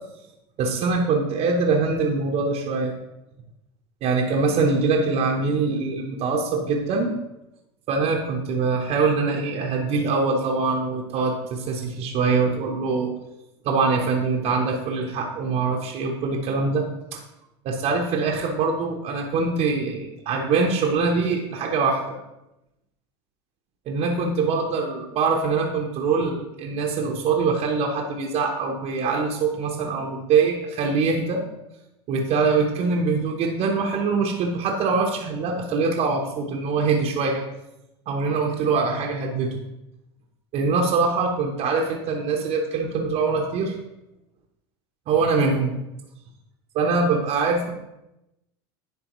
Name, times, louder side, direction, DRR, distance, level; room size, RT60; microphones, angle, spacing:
voice 1, 0.6-2.9 4.0-7.1 7.9-13.1 13.6-16.9 17.1-17.2 17.6-22.0 23.9-31.4 32.1-37.4 38.1-39.6 40.5-43.7 45.1-45.8 46.7-47.7, right 4 dB, 45° right, 0 dB, 0.9 m, -23 dB
10.5 x 3.5 x 3.1 m, 0.91 s
hypercardioid pair, 100°, 15 cm